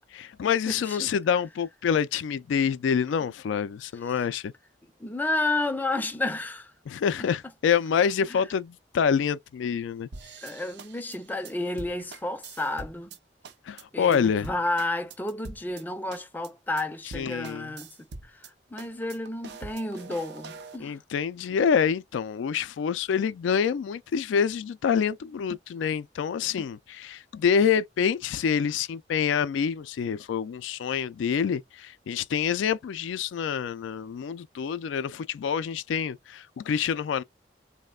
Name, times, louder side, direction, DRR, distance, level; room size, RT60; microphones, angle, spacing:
voice 1, 0.1-4.5 6.9-10.1 13.6-14.5 17.1-17.7 20.8-37.2, left 7 dB, 90° left, 0.3 m, -27 dB
voice 2, 0.7-1.1 5.0-6.7 8.3-8.4 10.4-13.2 13.9-17.9 18.2-21.0, left 2 dB, 10° left, 0.4 m, -31 dB
sound 1, 10.1-13.2 13.4-13.8 14.1-14.2 14.4-15.8 16.1-16.5 16.8-16.9 17.1-18.5 18.8-20.8, right 3 dB, 65° right, 0.5 m, -43 dB
3.0 x 2.1 x 2.3 m
head